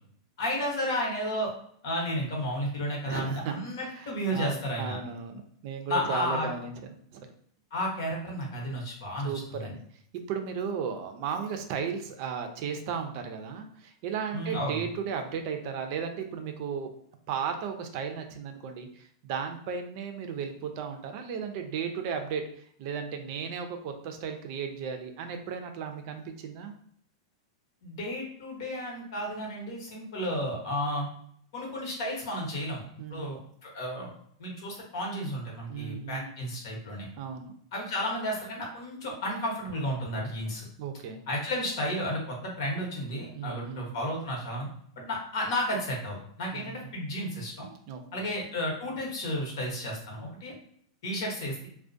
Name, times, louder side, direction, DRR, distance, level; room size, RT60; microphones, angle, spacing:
voice 1, 0.4-1.5 1.8-5.0 5.9-6.5 7.7-9.7 14.3-14.9 27.8-31.1 31.5-32.8 33.1-34.1 34.4-37.1 37.7-40.7 41.3-44.7 45.1-47.7 48.1-50.5 51.0-51.7, equal, 65° left, -1 dB, 1.0 m, -32 dB
voice 2, 3.0-3.5 3.8-7.2 9.2-9.8 10.1-16.9 17.3-22.4 22.8-26.7 33.0-33.4 35.7-36.4 37.2-37.5 40.8-41.2 43.3-43.9 46.5-46.9 47.9-48.3, right 7 dB, 55° right, 6 dB, 0.4 m, -35 dB
2.3 x 2.1 x 2.5 m, 0.64 s
hypercardioid pair, 115°, 2 cm